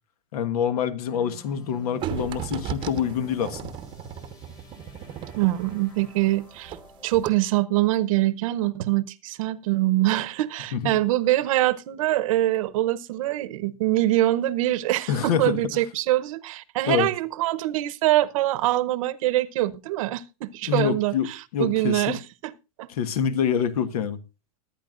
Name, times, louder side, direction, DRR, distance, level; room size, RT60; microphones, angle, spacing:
voice 1, 0.3-3.7 10.7-11.0 15.1-15.6 16.9-17.1 20.7-22.1 23.0-24.2, left 8 dB, 80° left, 1.5 m, -26 dB
sound 1, 1.1-7.2, left 4 dB, 20° left, 1.9 m, -50 dB
sound 2, 2.0-6.9 7.1-7.3, right 10 dB, 25° right, 0.8 m, -35 dB
voice 2, 5.4-6.8 7.0-22.9, right 15 dB, 60° right, 0.9 m, -24 dB
20.0 x 9.4 x 2.5 m
supercardioid pair, 165°, 19 cm